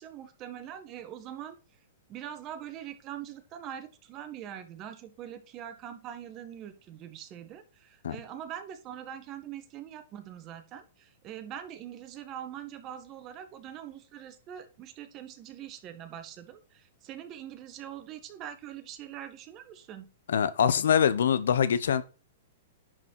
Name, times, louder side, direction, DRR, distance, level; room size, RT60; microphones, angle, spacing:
voice 1, 0.0-1.6 2.1-20.1, right 10 dB, 30° right, 1.3 m, -43 dB
voice 2, 20.3-22.0, left 8 dB, 80° left, 0.8 m, -24 dB
10.5 x 4.3 x 4.6 m
hypercardioid pair, 140°, 0 cm